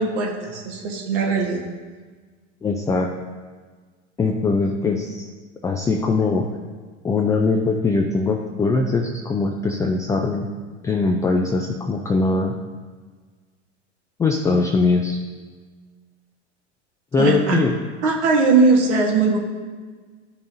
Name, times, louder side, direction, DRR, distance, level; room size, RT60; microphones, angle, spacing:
voice 1, 0.0-1.6 17.2-17.6 18.0-19.4, right 4 dB, 65° right, 1 dB, 1.5 m, -19 dB
voice 2, 2.6-3.1 4.2-5.3 5.6-6.4 7.0-10.5 10.8-12.5 14.2-15.2 17.1-17.7, left 3 dB, 10° left, 2 dB, 0.3 m, -21 dB
11.0 x 5.5 x 2.7 m, 1.5 s
hypercardioid pair, 90°, 37 cm